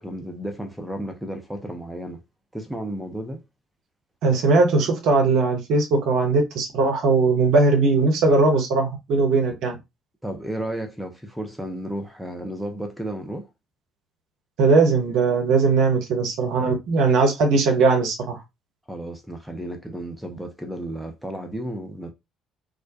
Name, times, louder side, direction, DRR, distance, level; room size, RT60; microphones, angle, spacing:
voice 1, 0.0-2.2 2.5-3.4 10.2-13.5 18.9-22.1, right 1 dB, 5° right, 0.7 m, -33 dB
voice 2, 4.2-9.7 14.6-18.4, right 3 dB, 60° right, 0.7 m, -19 dB
2.3 x 2.1 x 2.7 m
figure-of-eight pair, 50°, 0 cm